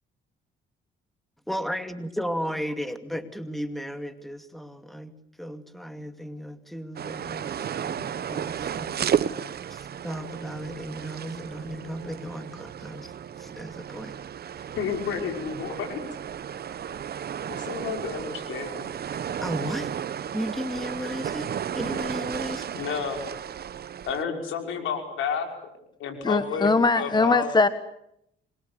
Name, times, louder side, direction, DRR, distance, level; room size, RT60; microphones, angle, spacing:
voice 1, 1.5-5.1 5.4-9.4 9.7-14.1 19.4-19.9 20.3-22.7, equal, ahead, 8 dB, 2.5 m, -35 dB
sound 1, 7.0-24.2, right 8 dB, 50° right, 1.1 m, -33 dB
voice 2, 14.7-16.0 17.5-18.9 22.7-23.2 24.0-25.5 26.0-27.5, left 6 dB, 85° left, 4 dB, 5.7 m, -30 dB
voice 3, 26.2-27.7, left 3 dB, 20° left, 11 dB, 1.5 m, -21 dB
26.5 x 22.5 x 8.4 m, 0.77 s
cardioid pair, 90°, 20 cm